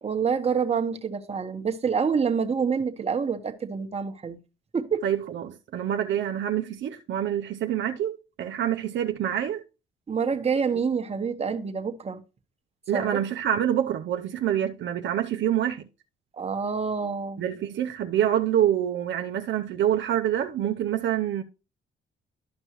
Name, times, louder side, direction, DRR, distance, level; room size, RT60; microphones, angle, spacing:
voice 1, 0.0-4.4 4.7-5.0 10.1-12.2 12.9-13.2 16.3-17.4, right 6 dB, 30° right, 1.1 m, -27 dB
voice 2, 5.0-9.6 12.9-15.8 17.4-21.4, right 10 dB, 70° right, 0.7 m, -26 dB
12.0 x 5.3 x 3.0 m
cardioid pair, 90°, 20 cm